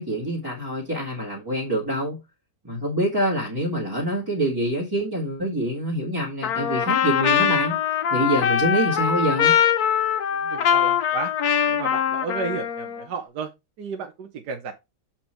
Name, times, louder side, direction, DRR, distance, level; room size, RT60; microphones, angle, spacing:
voice 1, 0.0-2.2 2.6-7.8 8.1-9.5, right 1 dB, 15° right, 1.6 m, -25 dB
Trumpet, 6.4-13.0, left 8 dB, 65° left, 1.3 m, -22 dB
voice 2, 10.3-11.3 11.7-13.5 13.8-14.7, right 5 dB, 70° right, 1.5 m, -33 dB
7.2 x 4.4 x 4.3 m
omnidirectional pair, 1.8 m